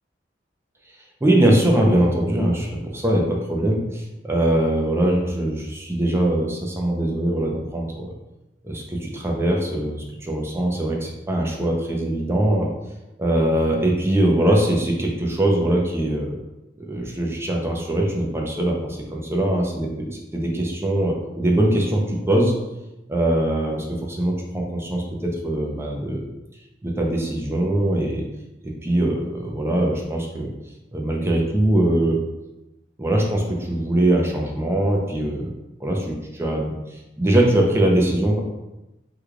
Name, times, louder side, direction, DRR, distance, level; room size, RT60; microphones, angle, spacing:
voice 1, 1.2-8.1 8.6-12.7 13.2-16.3 16.9-22.5 23.1-26.2 26.8-28.2 28.6-30.5 30.9-32.2 33.0-35.5 35.8-36.7 37.2-38.4, right 1 dB, 15° right, -1 dB, 0.5 m, -22 dB
3.1 x 2.3 x 3.6 m, 0.97 s
head